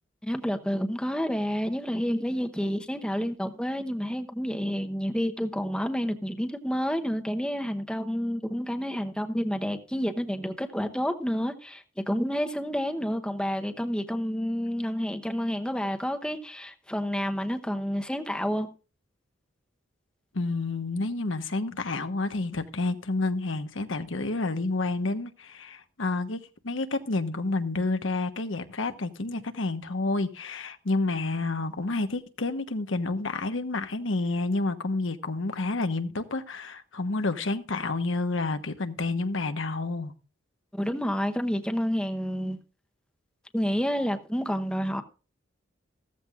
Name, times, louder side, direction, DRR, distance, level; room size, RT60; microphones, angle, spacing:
voice 1, 0.2-18.7 40.7-42.6 43.5-45.0, equal, 5° left, 0.9 m, -29 dB
voice 2, 20.3-40.1, left 2 dB, 85° left, 1.1 m, -29 dB
15.0 x 14.0 x 2.5 m
head